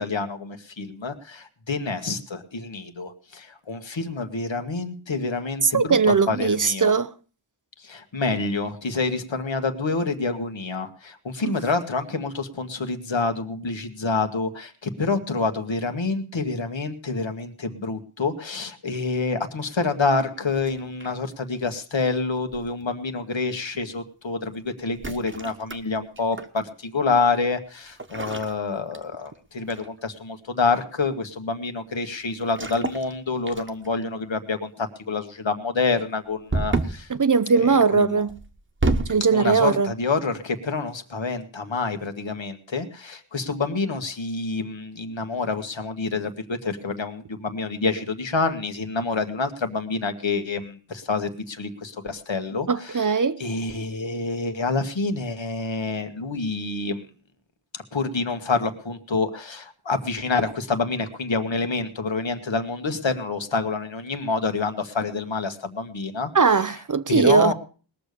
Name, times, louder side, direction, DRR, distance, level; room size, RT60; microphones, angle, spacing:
voice 1, 0.0-6.9 7.8-37.1 37.5-38.2 39.3-57.0 57.7-66.3 67.1-67.5, left 4 dB, 70° left, 1.7 m, -27 dB
voice 2, 5.6-7.1 11.4-11.5 37.1-38.4 39.1-39.9 52.7-53.4 66.3-67.5, right 5 dB, 40° right, 0.6 m, -20 dB
sound 1, 20.6-21.3 22.5-22.8 24.9-26.6 28.0-29.4 29.7-30.0 32.5-33.1 33.5-34.0 36.5-37.1 38.3-39.2, right 2 dB, 25° right, 1.3 m, -29 dB
20.0 x 6.9 x 6.6 m
wide cardioid pair, 70°, 47 cm